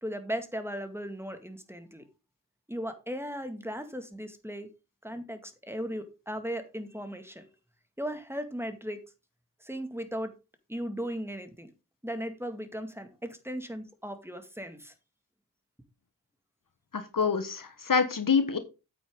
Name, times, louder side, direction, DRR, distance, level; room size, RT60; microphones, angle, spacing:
voice 1, 0.0-2.0 2.7-4.7 5.0-7.4 8.0-9.0 9.6-10.3 10.7-11.7 12.0-14.9, equal, 5° right, 2.0 m, -37 dB
voice 2, 16.9-18.6, left 5 dB, 55° left, 1.4 m, -26 dB
8.7 x 8.4 x 3.7 m
cardioid pair, 45°, 40 cm